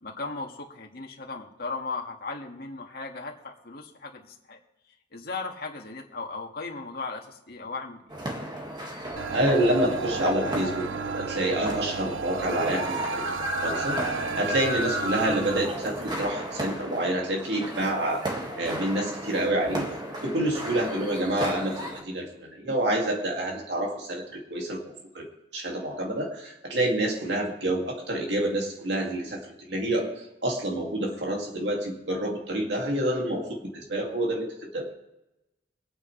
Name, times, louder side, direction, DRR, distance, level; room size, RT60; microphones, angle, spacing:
voice 1, 0.0-4.6 5.1-8.0, left 3 dB, 55° left, 1 dB, 1.9 m, -37 dB
sound 1, 8.1-22.0, equal, 25° right, 1.9 m, -34 dB
sound 2, 9.2-15.7, right 5 dB, 90° right, 0.5 m, -33 dB
voice 2, 9.3-14.0 14.4-18.3 18.6-19.9 20.2-25.3 25.5-34.9, right 1 dB, 65° right, 0 dB, 2.3 m, -28 dB
23.5 x 9.1 x 3.3 m, 0.94 s
head